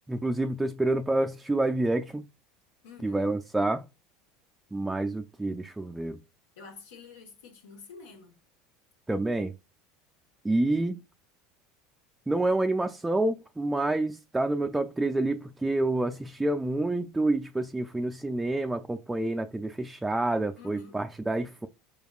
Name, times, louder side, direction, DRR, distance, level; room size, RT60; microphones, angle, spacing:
voice 1, 0.1-2.2 3.0-3.8 4.7-6.2 9.1-9.5 10.4-11.0 12.3-21.7, right 2 dB, 10° right, 0.3 m, -28 dB
voice 2, 2.8-3.3 6.6-8.4 10.7-10.8 20.6-21.0, left 4 dB, 90° left, 1.1 m, -48 dB
4.4 x 3.5 x 2.3 m
supercardioid pair, 105°, 0 cm